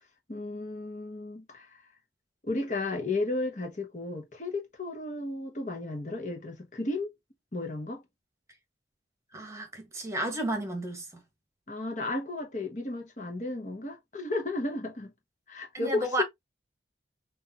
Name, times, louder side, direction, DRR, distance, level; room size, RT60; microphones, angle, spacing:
voice 1, 0.3-1.7 2.4-7.1 7.5-8.0 11.7-15.1 15.5-16.2, left 2 dB, 40° left, 1.1 m, -33 dB
voice 2, 9.3-11.2 15.7-16.2, right 1 dB, 15° right, 1.3 m, -32 dB
6.3 x 2.6 x 2.8 m
head